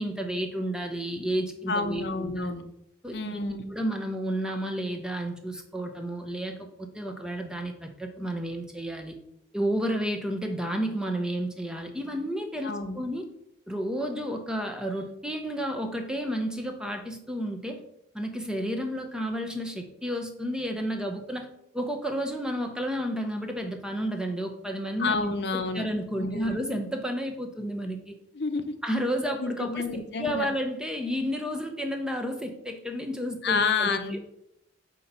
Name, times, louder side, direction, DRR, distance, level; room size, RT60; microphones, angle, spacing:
voice 1, 0.0-2.5 3.0-3.4 3.7-9.1 9.5-13.2 13.7-17.8 18.1-21.5 21.7-28.1 28.8-34.2, equal, 5° right, 4 dB, 0.7 m, -31 dB
voice 2, 1.7-2.6 3.1-3.7 12.6-13.0 25.0-25.8 26.2-26.5 28.3-28.7 29.4-30.5 33.4-34.2, left 4 dB, 60° left, 9 dB, 0.6 m, -29 dB
8.3 x 2.9 x 5.3 m, 0.77 s
head